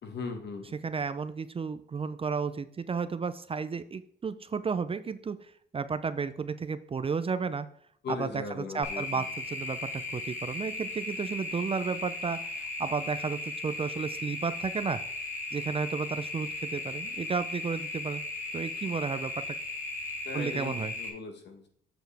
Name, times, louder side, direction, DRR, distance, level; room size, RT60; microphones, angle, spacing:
voice 1, 0.0-0.7 8.0-9.3 20.2-21.7, left 4 dB, 60° left, 5 dB, 1.6 m, -39 dB
voice 2, 0.8-7.7 8.1-15.0 15.5-18.2 18.5-19.6 20.3-20.9, right 5 dB, 30° right, 12 dB, 0.4 m, -33 dB
sound 1, 8.8-21.1, left 2 dB, 10° left, 2.3 m, -37 dB
8.0 x 7.0 x 3.4 m, 0.64 s
cardioid pair, 90°, 20 cm